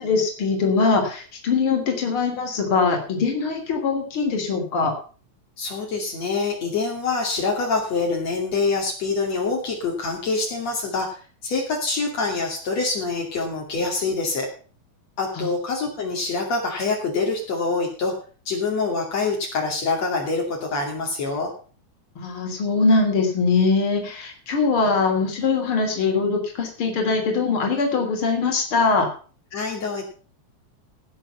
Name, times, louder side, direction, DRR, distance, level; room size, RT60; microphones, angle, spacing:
voice 1, 0.0-4.9 15.4-15.5 22.2-29.1, left 4 dB, 45° left, 3 dB, 3.9 m, -22 dB
voice 2, 5.6-14.5 15.2-18.1 18.5-21.5 29.5-30.0, left 3 dB, 60° left, -1 dB, 3.8 m, -25 dB
17.5 x 7.5 x 5.6 m, 0.39 s
omnidirectional pair, 3.3 m